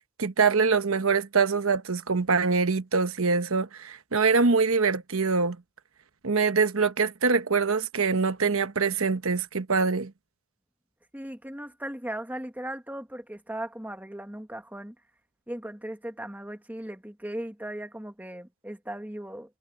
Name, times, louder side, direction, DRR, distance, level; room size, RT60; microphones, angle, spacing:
voice 1, 0.2-5.6 6.2-10.1, right 4 dB, 65° right, 1.1 m, -24 dB
voice 2, 11.1-14.9 15.5-19.6, right 1 dB, 5° right, 1.5 m, -37 dB
head